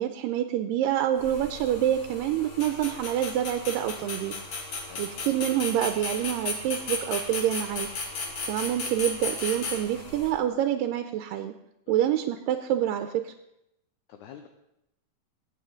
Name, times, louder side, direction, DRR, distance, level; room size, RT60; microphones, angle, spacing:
voice 1, 0.0-4.3 5.0-7.9 8.5-11.5 11.9-13.3, right 11 dB, 85° right, 7 dB, 2.3 m, -27 dB
sound 1, 1.2-10.3, left 3 dB, 55° left, 2.6 m, -35 dB
voice 2, 14.1-14.5, left 9 dB, 75° left, 5 dB, 2.0 m, -47 dB
21.5 x 8.6 x 3.8 m, 0.84 s
omnidirectional pair, 4.0 m